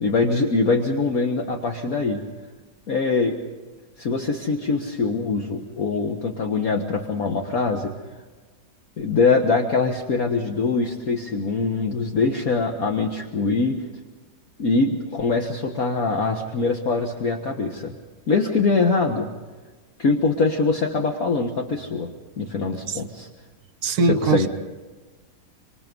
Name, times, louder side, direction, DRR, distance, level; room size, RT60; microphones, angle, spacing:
voice 1, 0.0-2.2 2.9-3.4 4.0-7.9 9.0-13.8 14.6-17.9 18.3-19.3 20.0-22.1 22.4-23.3 24.0-24.5, left 4 dB, 50° left, 1.9 m, -23 dB
voice 2, 23.8-24.5, right 4 dB, 60° right, 1.2 m, -21 dB
26.5 x 25.0 x 5.4 m
omnidirectional pair, 2.0 m